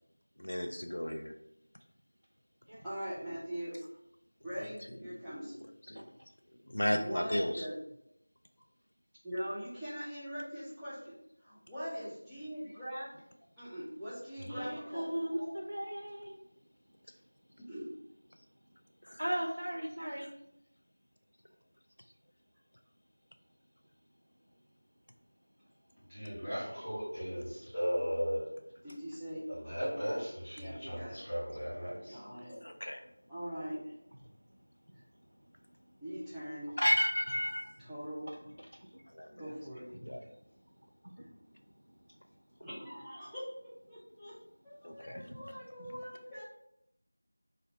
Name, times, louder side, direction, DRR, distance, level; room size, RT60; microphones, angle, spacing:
voice 1, 0.4-1.3 5.3-5.5 5.9-6.1 6.7-7.7 19.0-19.2 32.6-33.0 36.8-37.7 39.1-39.5 39.9-40.3 44.8-45.2, equal, 70° left, 5 dB, 0.4 m, -33 dB
voice 2, 2.8-3.8 4.4-5.5 6.8-7.8 9.2-13.1 13.6-15.1 17.7-17.9 28.8-29.4 29.8-30.2 30.6-31.2 32.1-32.6 33.3-33.9 36.0-36.7 37.8-38.3 39.4-39.9 41.2-41.3 42.6-44.4 44.6-46.4, equal, ahead, -18 dB, 0.3 m, -42 dB
voice 3, 14.5-16.4 19.2-20.3 26.4-26.5 38.6-39.0 39.9-40.4 41.0-41.3 45.2-45.5 45.9-46.0, equal, 80° right, 0 dB, 0.4 m, -38 dB
voice 4, 26.1-28.4 29.5-32.2, equal, 15° left, -13 dB, 0.9 m, -36 dB
2.6 x 2.0 x 3.9 m, 0.79 s
figure-of-eight pair, 175°, 0 cm